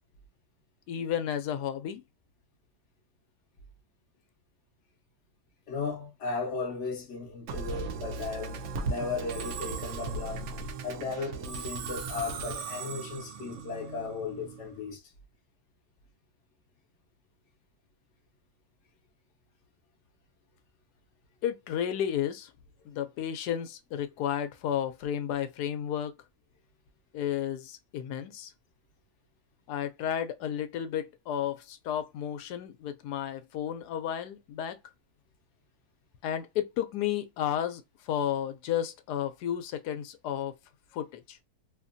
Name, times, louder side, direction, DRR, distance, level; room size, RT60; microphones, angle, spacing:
voice 1, 0.9-2.0 21.4-22.5 22.9-26.2 27.1-28.5 29.7-34.8 36.2-40.5 40.9-41.4, left 10 dB, 80° left, 1.1 m, -32 dB
voice 2, 5.7-10.5 10.8-15.0, left 4 dB, 60° left, 0.8 m, -36 dB
Musical instrument, 7.5-14.8, right 4 dB, 70° right, 0.7 m, -37 dB
2.8 x 2.5 x 2.5 m
omnidirectional pair, 1.7 m